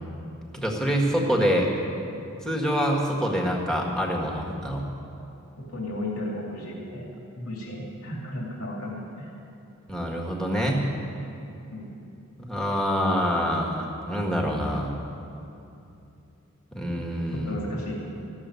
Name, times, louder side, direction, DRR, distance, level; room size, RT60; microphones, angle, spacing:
voice 1, 0.5-1.7 2.4-4.9 9.9-10.9 12.4-15.0 16.7-17.6, equal, 5° left, -2 dB, 1.6 m, -26 dB
voice 2, 5.6-9.3 11.7-11.9 17.3-17.9, left 1 dB, 80° left, -3 dB, 2.5 m, -34 dB
15.0 x 7.3 x 9.5 m, 2.7 s
head